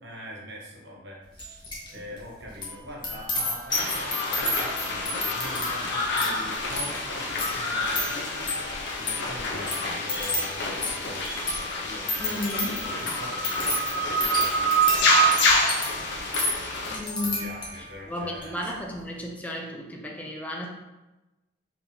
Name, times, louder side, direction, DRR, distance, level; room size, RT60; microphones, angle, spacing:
voice 1, 0.0-11.4 11.8-16.5 17.2-18.6, equal, 60° right, -3 dB, 1.0 m, -43 dB
sound 1, 1.4-1.9 2.2-17.9 18.3-18.7, left 2 dB, 25° left, 1.0 m, -32 dB
sound 2, 3.7-17.0, equal, 60° left, 0.7 m, -27 dB
voice 2, 12.2-12.8 16.9-17.5 18.1-20.7, left 1 dB, 10° left, -1 dB, 0.5 m, -33 dB
4.6 x 3.5 x 2.7 m, 1.0 s
head